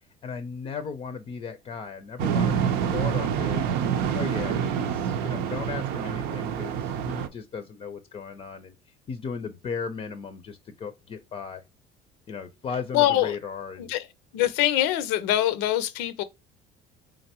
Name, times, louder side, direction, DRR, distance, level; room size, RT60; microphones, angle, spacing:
voice 1, 0.2-3.7 4.1-8.7 9.1-11.6 12.3-13.9, left 6 dB, 35° left, 0.5 m, -36 dB
sound 1, 2.2-7.3, right 8 dB, 75° right, 0.6 m, -27 dB
voice 2, 12.9-13.4 13.8-14.1 14.3-16.2, left 13 dB, 85° left, 0.6 m, -24 dB
3.8 x 3.2 x 2.8 m
cardioid pair, 130°, 16 cm